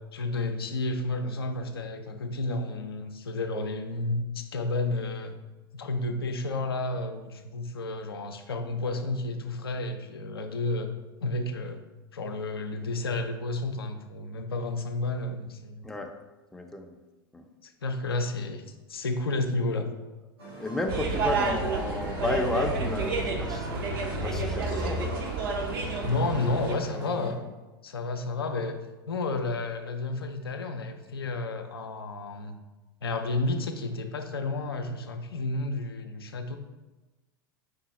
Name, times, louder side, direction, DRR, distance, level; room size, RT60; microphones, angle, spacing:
voice 1, 0.1-5.4 5.7-10.9 11.2-11.8 12.1-15.8 17.6-19.9 26.0-27.4 27.8-28.8 29.1-32.6 33.0-36.6, left 2 dB, 80° left, 5 dB, 0.4 m, -31 dB
voice 2, 16.5-17.0 17.3-17.4 20.6-23.7 24.2-25.1, left 2 dB, 5° left, 3 dB, 0.4 m, -32 dB
sound 1, 20.4-27.3, right 1 dB, 85° right, 1.4 m, -42 dB
sound 2, 20.9-26.7, right 3 dB, 60° right, 0.7 m, -30 dB
4.9 x 2.3 x 3.9 m, 1.1 s
figure-of-eight pair, 90°, 12 cm